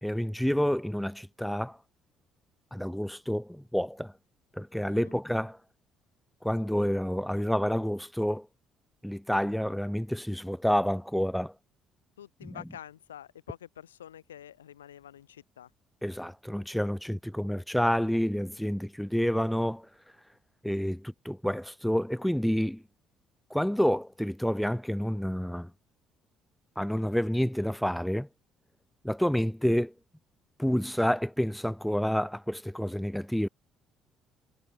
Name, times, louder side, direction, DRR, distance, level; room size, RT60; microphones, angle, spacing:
voice 1, 0.0-1.8 2.7-4.1 4.6-5.6 6.4-8.5 9.0-11.5 12.4-12.6 16.0-19.9 20.6-22.8 23.5-25.7 26.8-28.3 29.0-29.9 30.6-33.5, equal, 5° left, 0.3 m, -29 dB
voice 2, 12.2-15.7, left 10 dB, 85° left, 0.8 m, -47 dB
figure-of-eight pair, 50°, 0 cm